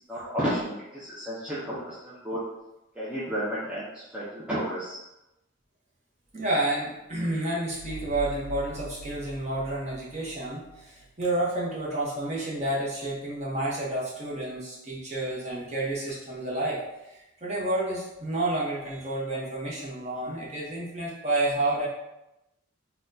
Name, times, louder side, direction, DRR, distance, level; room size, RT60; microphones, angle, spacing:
voice 1, 0.1-2.4 3.0-5.0, equal, 5° right, -10 dB, 0.5 m, -32 dB
voice 2, 6.3-21.9, right 1 dB, 30° right, -6 dB, 0.8 m, -30 dB
sound 1, 7.7-11.1, right 4 dB, 75° left, 0.5 m, -42 dB
4.1 x 2.2 x 2.6 m, 0.94 s
head